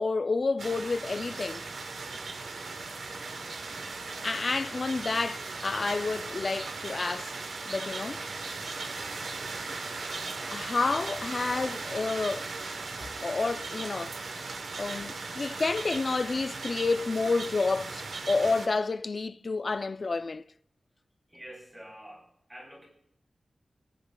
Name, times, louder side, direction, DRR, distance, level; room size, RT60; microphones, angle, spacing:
voice 1, 0.0-1.7 4.2-7.3 7.7-8.2 10.5-12.5 13.2-14.2 14.8-20.4, left 3 dB, 45° left, 0.3 m, -29 dB
sound 1, 0.6-18.7, right 3 dB, 75° right, 0.9 m, -38 dB
voice 2, 21.3-22.9, equal, 15° right, 3.6 m, -47 dB
20.0 x 8.7 x 2.2 m
wide cardioid pair, 115°, 0 cm